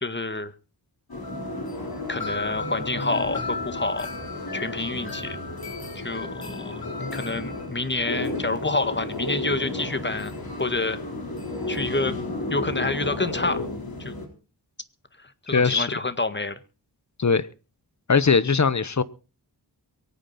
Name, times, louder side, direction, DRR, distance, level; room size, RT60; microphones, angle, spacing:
voice 1, 0.0-0.5 2.1-4.1 4.5-5.4 6.0-6.8 7.1-10.3 10.6-11.0 11.7-12.2 12.5-13.6 14.0-14.1 15.2-16.6, left 2 dB, 25° left, 1.7 m, -28 dB
sound 1, 1.1-14.3, left 2 dB, 60° left, 4.3 m, -32 dB
voice 2, 15.5-16.0 17.2-17.5 18.1-19.0, left 5 dB, 45° left, 1.1 m, -20 dB
23.5 x 9.3 x 4.3 m
wide cardioid pair, 60°, 41 cm